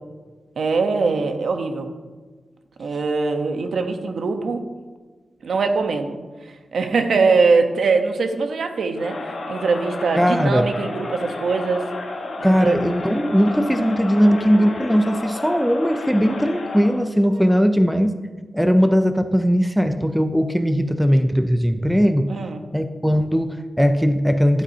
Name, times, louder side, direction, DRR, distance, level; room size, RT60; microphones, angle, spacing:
voice 1, 0.6-1.9 2.8-4.6 5.4-6.2 6.7-11.9 12.4-12.8 17.3-17.4 22.3-22.6, right 4 dB, 70° right, 6 dB, 0.9 m, -22 dB
Crowd, 8.9-17.1, left 2 dB, 60° left, 1.2 m, -31 dB
voice 2, 10.2-10.7 12.4-18.2 18.5-22.3 22.7-24.6, equal, ahead, 8 dB, 0.4 m, -19 dB
11.5 x 8.3 x 2.7 m, 1.3 s
wide cardioid pair, 170°, 0 cm